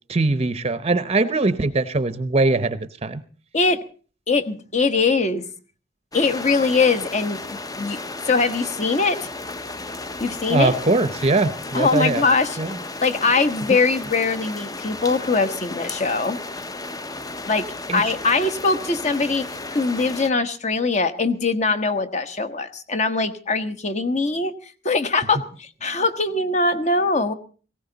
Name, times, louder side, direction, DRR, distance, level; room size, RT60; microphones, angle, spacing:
voice 1, 0.1-3.2 10.5-12.2 12.6-12.7 17.9-18.0, right 3 dB, 35° right, 12 dB, 0.7 m, -21 dB
voice 2, 4.3-5.4 6.1-8.0 8.2-9.3 10.2-10.8 11.7-12.6 13.0-16.4 17.5-19.4 19.7-24.5 24.8-27.3, left 3 dB, 40° left, 10 dB, 1.2 m, -22 dB
sound 1, 6.1-20.3, left 2 dB, 20° left, 0.7 m, -34 dB
19.0 x 16.5 x 4.0 m, 0.39 s
head